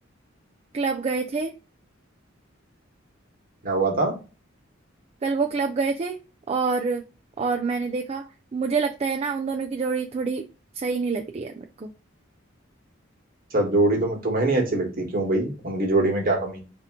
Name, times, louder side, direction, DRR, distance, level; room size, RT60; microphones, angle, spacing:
voice 1, 0.7-1.5 5.2-6.2 6.5-7.0 7.4-8.2 8.5-10.4 10.7-11.9, right 4 dB, 30° right, 0.3 m, -26 dB
voice 2, 3.6-4.1 13.5-16.6, right 2 dB, 45° right, 1.4 m, -23 dB
3.6 x 2.8 x 3.6 m
head